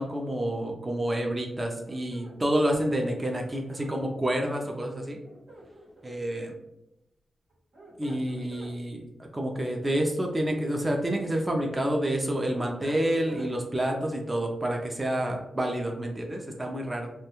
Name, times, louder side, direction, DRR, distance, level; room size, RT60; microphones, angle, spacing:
voice 1, 0.0-5.2 6.0-6.6 8.0-17.1, right 1 dB, 20° right, 1 dB, 0.4 m, -29 dB
sound 1, 1.8-3.9 5.2-6.3 7.5-8.7 10.2-11.3 11.7-13.5, right 1 dB, 85° right, 0.9 m, -48 dB
2.3 x 2.1 x 2.9 m, 0.89 s
cardioid pair, 80°, 0 cm